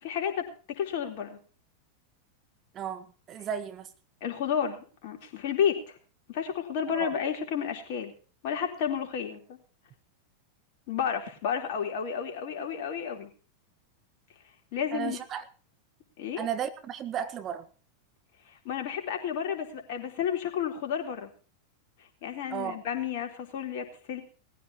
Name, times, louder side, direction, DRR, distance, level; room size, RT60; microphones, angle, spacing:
voice 1, 0.0-1.4 4.2-6.0 6.3-8.1 8.4-9.6 10.9-13.3 14.7-15.2 16.2-16.5 18.6-21.3 22.2-24.2, left 8 dB, 50° left, 3.8 m, -31 dB
voice 2, 2.7-3.9 6.9-7.1 14.9-15.4 16.4-17.7 22.5-22.8, right 8 dB, 30° right, 1.3 m, -34 dB
20.0 x 15.0 x 3.0 m
figure-of-eight pair, 90°, 0 cm